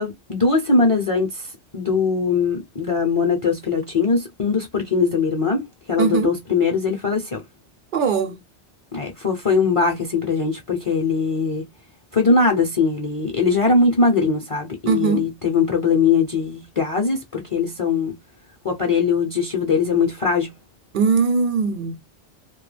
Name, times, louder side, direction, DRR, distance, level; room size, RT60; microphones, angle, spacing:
voice 1, 0.0-5.6 5.9-7.4 8.9-11.6 12.1-18.1 18.6-20.5, left 4 dB, 40° left, 0.5 m, -21 dB
voice 2, 6.0-6.3 7.9-8.4 14.9-15.3 20.9-22.0, right 5 dB, 60° right, 0.6 m, -20 dB
2.2 x 2.2 x 3.2 m
omnidirectional pair, 1.2 m